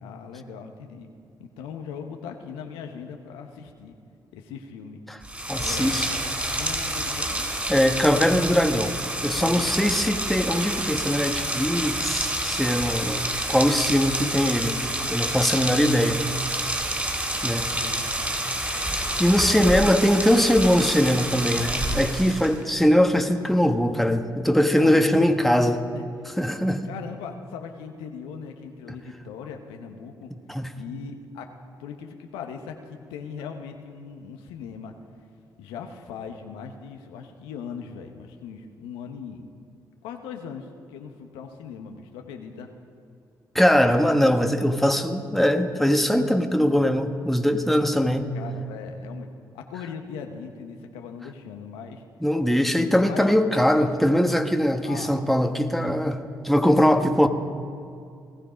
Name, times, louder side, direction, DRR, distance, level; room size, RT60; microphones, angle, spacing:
voice 1, 0.0-1.1 1.4-4.0 4.3-5.0 5.6-6.0 6.5-7.4 9.4-10.1 17.6-18.0 24.7-25.3 25.9-26.1 26.8-30.3 30.7-31.5 31.8-34.9 35.6-39.4 40.0-42.7 48.3-49.3 49.5-52.0 52.8-53.4 54.8-55.1, left 6 dB, 85° left, 4 dB, 1.0 m, -39 dB
Rain, 5.2-22.6, right 1 dB, 20° right, 3.8 m, -28 dB
voice 2, 5.5-6.1 7.7-8.9 9.2-14.8 15.1-16.2 17.4-17.8 19.2-25.8 26.4-26.9 30.5-30.7 43.5-48.3 52.2-57.3, equal, ahead, 6 dB, 1.3 m, -21 dB
19.0 x 14.5 x 5.1 m, 2.4 s
supercardioid pair, 50°, 9 cm